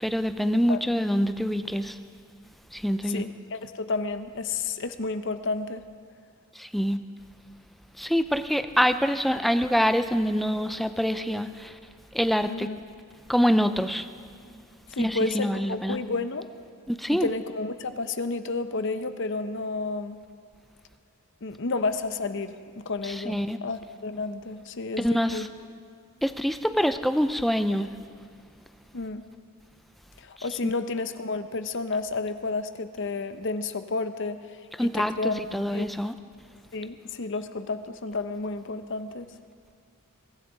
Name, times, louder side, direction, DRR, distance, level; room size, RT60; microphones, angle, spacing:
voice 1, 0.0-2.0 2.7-3.2 6.6-7.0 8.0-11.8 12.1-12.7 13.3-14.1 15.0-16.0 16.9-17.3 23.0-23.6 25.0-25.5 26.2-27.9 30.6-30.7 34.8-36.1, equal, ahead, 9 dB, 0.4 m, -25 dB
voice 2, 3.0-5.8 12.4-12.8 14.9-16.5 17.2-20.2 21.4-25.5 28.9-29.2 30.2-35.4 35.7-35.9 36.7-39.3, left 3 dB, 55° left, 10 dB, 0.7 m, -31 dB
22.5 x 14.5 x 3.9 m, 2.3 s
head